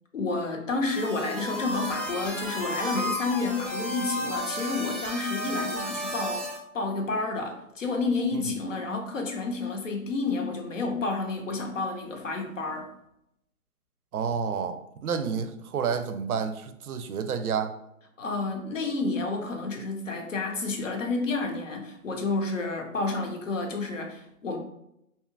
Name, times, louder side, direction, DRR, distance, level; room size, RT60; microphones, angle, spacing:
voice 1, 0.1-6.5 6.7-12.9 18.2-24.6, left 3 dB, 60° left, 3 dB, 0.7 m, -30 dB
sound 1, 0.9-6.6, equal, ahead, 0.3 m, -33 dB
voice 2, 14.1-17.8, right 6 dB, 85° right, 9 dB, 0.5 m, -30 dB
2.8 x 2.4 x 2.3 m, 0.79 s
hypercardioid pair, 175°, 43 cm